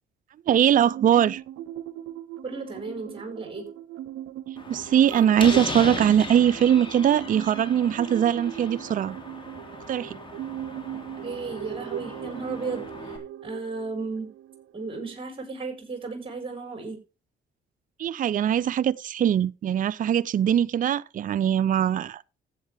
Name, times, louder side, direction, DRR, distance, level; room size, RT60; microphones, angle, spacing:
voice 1, 0.5-1.4 4.7-9.2 9.9-10.2 18.0-22.2, right 9 dB, 45° right, 0.5 m, -21 dB
sound 1, 0.8-15.2, right 12 dB, 90° right, 0.6 m, -39 dB
voice 2, 2.4-3.7 11.2-14.3 14.7-17.0, right 4 dB, 25° right, 4.8 m, -34 dB
Slam, 4.6-13.2, left 2 dB, 25° left, 3.4 m, -38 dB
15.0 x 8.1 x 3.4 m
cardioid pair, 90°, 20 cm